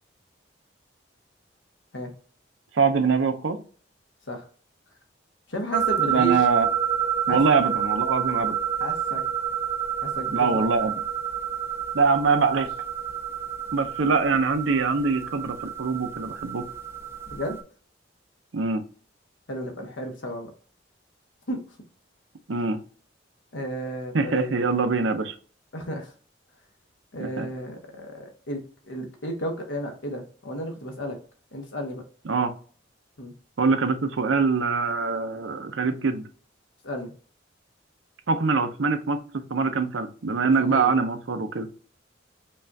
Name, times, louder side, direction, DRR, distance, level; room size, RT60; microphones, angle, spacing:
voice 1, 2.7-3.6 6.1-6.7 7.3-8.5 10.3-11.0 11.9-12.7 13.7-16.6 18.5-18.8 22.5-22.8 24.1-25.3 27.2-27.5 32.3-32.5 33.6-36.2 38.3-41.7, right 4 dB, 85° right, 8 dB, 0.6 m, -23 dB
voice 2, 5.5-6.4 7.3-7.4 8.8-9.2 10.0-10.9 12.5-12.6 17.3-17.6 19.5-20.5 21.5-21.6 23.5-24.6 25.7-26.1 27.1-31.2 31.5-32.0 33.2-33.3 36.8-37.1 40.4-40.9, equal, 85° left, 3 dB, 1.1 m, -33 dB
sound 1, 5.7-17.6, right 8 dB, 15° right, 0.3 m, -29 dB
5.3 x 2.4 x 2.7 m, 0.41 s
head